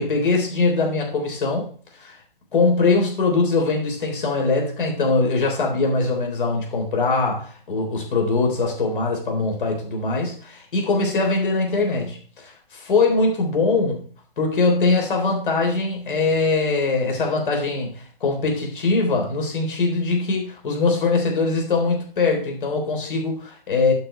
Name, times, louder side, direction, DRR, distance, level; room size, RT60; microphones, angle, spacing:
voice 1, 0.0-1.7 2.0-2.1 2.5-14.0 14.4-23.9, left 3 dB, 60° left, 1 dB, 3.7 m, -22 dB
11.5 x 5.2 x 4.4 m, 0.44 s
figure-of-eight pair, 130°, 29 cm